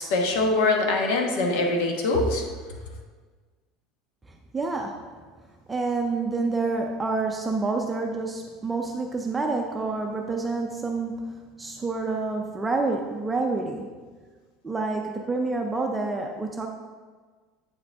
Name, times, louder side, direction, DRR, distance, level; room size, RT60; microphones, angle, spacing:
voice 1, 0.0-2.4, left 2 dB, 80° left, 2 dB, 1.2 m, -23 dB
voice 2, 4.5-5.1 5.7-13.9 14.6-16.7, right 3 dB, 10° right, 2 dB, 0.4 m, -28 dB
8.3 x 4.9 x 3.4 m, 1.5 s
cardioid pair, 165°, 0 cm